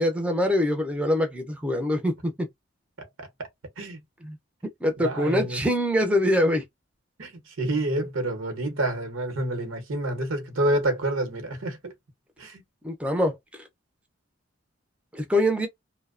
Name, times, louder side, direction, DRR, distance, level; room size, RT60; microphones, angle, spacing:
voice 1, 0.0-2.5 4.2-4.4 4.8-6.6 12.8-13.4 15.1-15.7, left 1 dB, 5° right, 0.4 m, -24 dB
voice 2, 3.0-3.5 3.8-4.0 5.0-5.6 7.2-11.9 12.4-12.6, right 1 dB, 80° right, 0.9 m, -28 dB
2.6 x 2.0 x 2.4 m
head